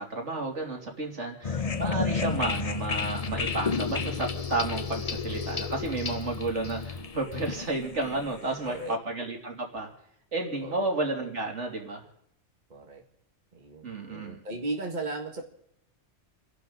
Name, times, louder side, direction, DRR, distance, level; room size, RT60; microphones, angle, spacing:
voice 1, 0.0-9.9 10.3-12.0 13.8-14.4, right 2 dB, 80° right, 2 dB, 3.1 m, -32 dB
sound 1, 1.4-8.9, left 5 dB, 35° left, 0.8 m, -32 dB
voice 2, 8.6-9.0 10.6-10.9 12.7-13.0 13.5-15.5, right 2 dB, 40° right, 2 dB, 1.9 m, -36 dB
29.5 x 11.5 x 3.9 m, 0.75 s
omnidirectional pair, 1.2 m